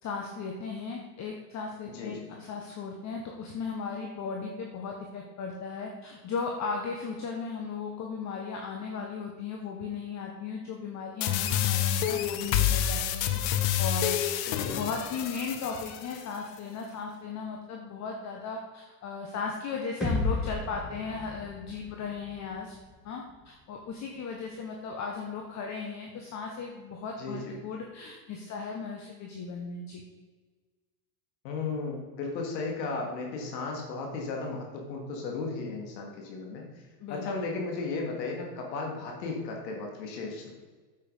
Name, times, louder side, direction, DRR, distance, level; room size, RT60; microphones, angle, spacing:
voice 1, 0.0-13.4 13.8-14.4 14.7-22.8 23.0-30.0 37.0-37.3, left 5 dB, 35° left, 1 dB, 1.5 m, -36 dB
voice 2, 1.9-2.2 14.4-14.8 27.2-27.6 31.4-36.7 37.1-40.5, left 3 dB, 75° left, 1 dB, 3.3 m, -35 dB
sound 1, 11.2-16.2, left 10 dB, 55° left, 1.1 m, -28 dB
sound 2, 20.0-23.9, left 2 dB, ahead, 2.7 m, -35 dB
9.0 x 7.6 x 5.4 m, 1.4 s
supercardioid pair, 125°, 50 cm